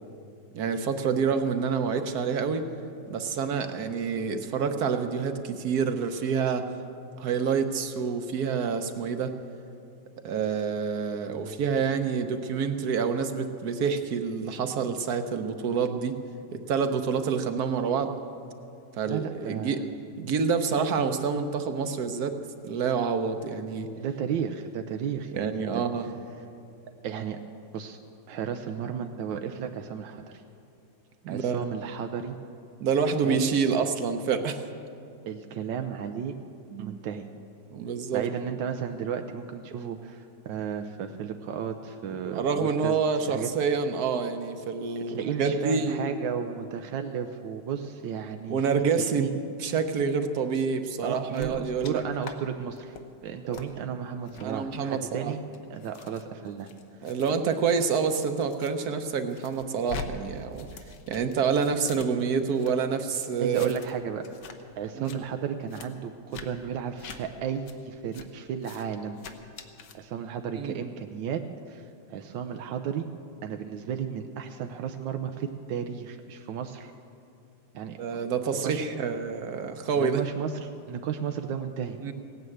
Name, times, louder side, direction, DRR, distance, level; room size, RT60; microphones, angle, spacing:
voice 1, 0.5-2.7 3.1-6.7 7.2-9.3 10.2-16.2 16.5-18.1 19.0-19.8 20.2-22.4 22.6-23.9 25.3-26.1 31.2-31.7 32.8-34.6 36.7-37.0 37.7-38.2 42.3-46.1 48.5-52.0 53.5-53.7 54.4-55.3 57.0-60.7 61.1-63.7 64.9-65.1 70.6-70.8 78.0-80.2 82.0-82.1, right 6 dB, 65° right, 8 dB, 1.2 m, -27 dB
voice 2, 19.1-19.8 24.0-25.8 27.0-27.4 27.7-28.0 28.3-30.4 31.3-32.4 33.2-33.5 35.3-36.4 36.8-37.3 38.1-42.9 43.3-43.5 45.0-49.3 51.0-55.4 55.7-56.7 63.4-64.2 64.8-69.2 69.9-71.8 72.1-73.1 73.4-76.9 77.7-78.0 78.6-78.8 80.0-82.0, right 7 dB, 85° right, 6 dB, 1.4 m, -33 dB
sound 1, 51.3-51.9 52.2-52.4 52.7-53.0 53.5-53.7 54.3-54.5 55.1-58.7 59.1-60.1 60.3-62.7 63.1-64.0 64.2-64.6 64.9-65.2 65.7-65.9 66.3-66.5 67.0-67.2 67.7-67.8 68.1-68.3 68.6-68.8 69.2-70.0, left 5 dB, 70° left, 1.5 m, -44 dB
17.0 x 9.8 x 7.9 m, 2.5 s
omnidirectional pair, 2.0 m